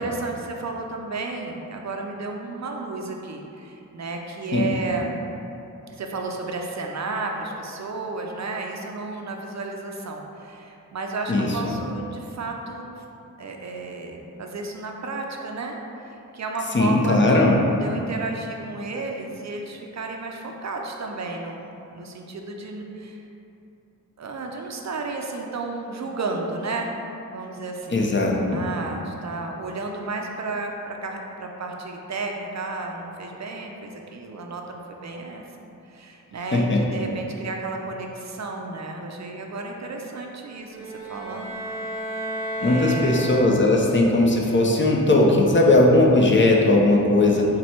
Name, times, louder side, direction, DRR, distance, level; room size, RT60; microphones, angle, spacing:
voice 1, 0.0-5.2 5.9-13.0 13.4-15.8 16.0-17.5 17.8-23.2 24.2-26.9 27.3-28.1 28.5-35.4 35.9-41.6 42.6-43.2, right 3 dB, 50° right, 2 dB, 0.5 m, -32 dB
voice 2, 11.3-11.7 16.7-17.6 27.9-28.6 36.5-36.8 42.6-47.5, left 2 dB, 35° left, -1 dB, 0.6 m, -18 dB
sound 1, 40.7-43.9, equal, 15° right, 0.9 m, -32 dB
4.2 x 2.2 x 4.3 m, 2.9 s
cardioid pair, 55°, 34 cm